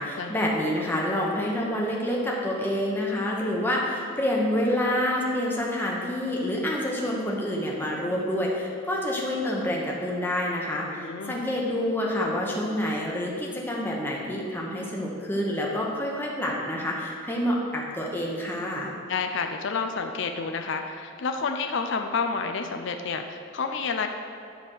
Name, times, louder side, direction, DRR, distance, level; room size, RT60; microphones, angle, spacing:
voice 1, 0.0-18.9, left 1 dB, 10° left, -3 dB, 1.0 m, -28 dB
voice 2, 11.0-11.4 19.1-24.1, left 5 dB, 60° left, 5 dB, 0.5 m, -29 dB
10.0 x 3.5 x 6.3 m, 2.4 s
head